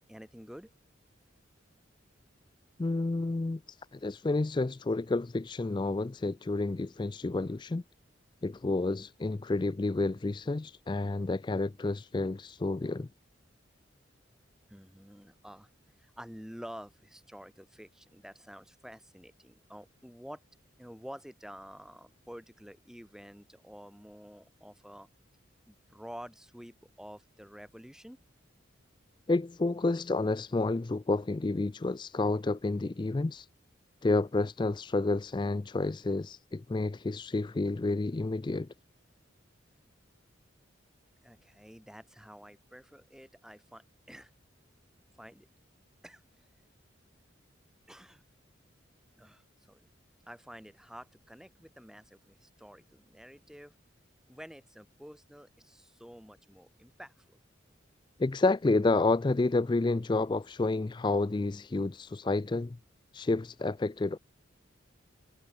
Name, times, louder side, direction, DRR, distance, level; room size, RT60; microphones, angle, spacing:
voice 1, 0.1-0.7 14.7-15.7 16.0-20.4 20.8-25.1 25.7-28.2 41.2-44.3 45.2-45.5 46.0-46.5 47.9-48.2 49.2-49.9 50.3-53.7 54.3-57.4, equal, 5° right, 2.5 m, -49 dB
voice 2, 2.8-7.8 8.4-13.1 29.3-33.5 34.0-38.7 58.2-62.8 63.1-64.2, left 2 dB, 25° left, 0.3 m, -30 dB
head